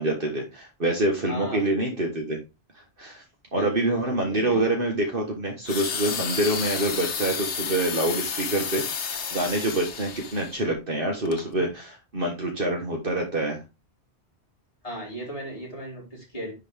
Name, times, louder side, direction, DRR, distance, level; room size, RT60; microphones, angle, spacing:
voice 1, 0.0-2.4 3.0-3.2 3.5-8.8 9.1-13.6, right 1 dB, 55° right, 1 dB, 1.7 m, -26 dB
voice 2, 1.3-1.9 3.5-4.7 14.8-16.5, right 1 dB, 30° left, -4 dB, 4.6 m, -36 dB
sound 1, 5.7-10.6 11.3-11.4, left 6 dB, 80° left, 1.3 m, -31 dB
10.5 x 4.7 x 3.5 m, 0.26 s
omnidirectional pair, 1.1 m